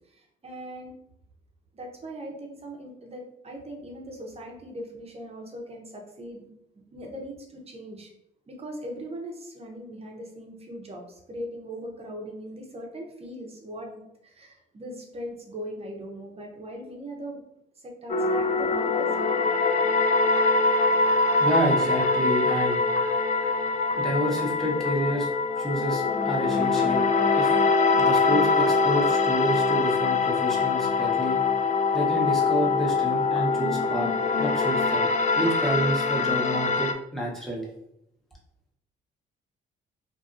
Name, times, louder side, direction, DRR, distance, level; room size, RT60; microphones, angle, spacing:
voice 1, 0.1-0.9 1.7-6.5 6.7-8.1 8.5-17.4 17.8-19.4, equal, 30° right, 1 dB, 0.7 m, -40 dB
sound 1, 18.1-36.9, left 4 dB, 35° left, 0.4 m, -23 dB
voice 2, 21.4-22.8 23.9-25.3 25.6-27.1 27.3-27.6 28.0-31.4 31.9-34.1 34.4-35.1 35.3-37.7, equal, ahead, -4 dB, 0.9 m, -29 dB
2.6 x 2.6 x 2.5 m, 0.80 s
cardioid pair, 90°, 20 cm